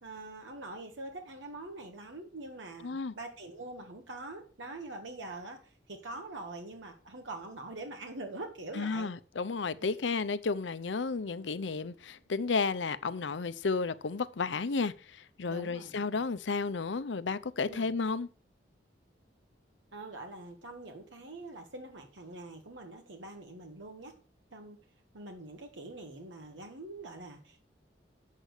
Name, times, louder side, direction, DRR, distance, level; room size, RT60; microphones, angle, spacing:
voice 1, 0.0-9.1 9.8-10.1 15.5-16.2 17.6-17.9 19.9-24.1 24.5-24.8 25.1-27.6, right 2 dB, 85° right, 1.6 m, -44 dB
voice 2, 2.8-3.1 8.8-18.3, left 4 dB, 80° left, 0.6 m, -32 dB
8.2 x 7.4 x 6.5 m
head